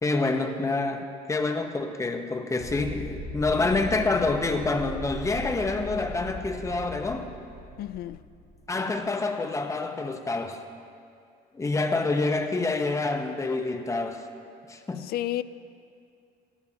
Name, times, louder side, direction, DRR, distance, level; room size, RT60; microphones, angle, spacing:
voice 1, 0.0-7.3 8.7-10.6 11.5-14.3 14.7-15.1, left 3 dB, 20° left, 0.9 m, -27 dB
sound 1, 2.6-8.8, equal, 20° right, 1.6 m, -39 dB
voice 2, 7.8-8.2 15.0-15.4, left 14 dB, 65° left, 0.4 m, -31 dB
18.0 x 12.5 x 2.9 m
cardioid pair, 110°, 17 cm